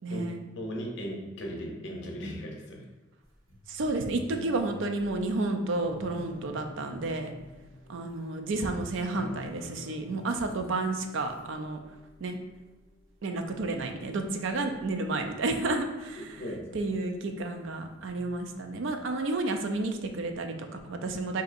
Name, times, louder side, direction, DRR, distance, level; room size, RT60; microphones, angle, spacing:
voice 1, 0.0-0.5 3.7-7.3 7.9-11.8 12.2-12.4 13.2-16.4 16.7-21.4, right 2 dB, 70° right, 5 dB, 0.4 m, -31 dB
voice 2, 0.6-2.9 16.4-16.9, equal, 65° left, 0 dB, 0.7 m, -37 dB
sound 1, 3.2-13.1 13.5-13.7 14.3-15.3 15.6-15.8 17.4-18.6, left 1 dB, 85° right, 1.1 m, -48 dB
4.7 x 2.7 x 2.5 m, 1.1 s
head